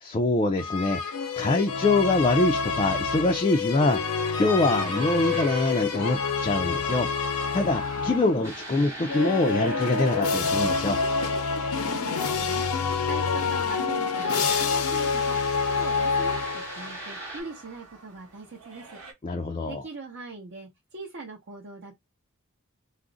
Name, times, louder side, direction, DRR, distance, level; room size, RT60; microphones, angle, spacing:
voice 1, 0.0-7.1 7.5-11.0 19.2-19.9, left 2 dB, 25° left, 0.3 m, -24 dB
sound 1, 0.6-8.4 9.0-17.0, left 5 dB, 90° left, 0.6 m, -27 dB
sound 2, 3.7-19.1, right 3 dB, 85° right, 1.0 m, -44 dB
sound 3, 8.4-11.9 14.1-17.4, right 1 dB, 15° right, 1.0 m, -41 dB
voice 2, 11.7-12.7 13.1-19.0 19.6-21.9, right 3 dB, 55° right, 0.7 m, -41 dB
2.4 x 2.0 x 3.7 m
head